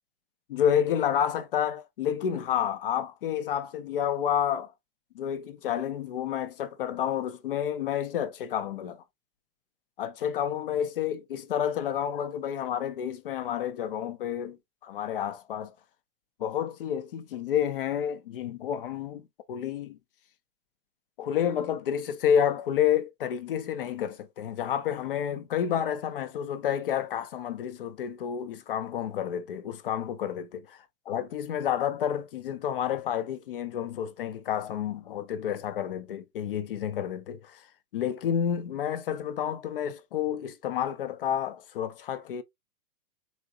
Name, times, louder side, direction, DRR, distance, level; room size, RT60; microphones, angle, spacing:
voice 1, 0.5-4.7 5.1-9.0 10.0-14.6 14.8-15.7 16.4-20.0 21.2-30.8 31.1-37.6 37.9-42.4, left 9 dB, 40° left, 0.4 m, -30 dB
3.9 x 3.7 x 2.3 m
hypercardioid pair, 155°, 47 cm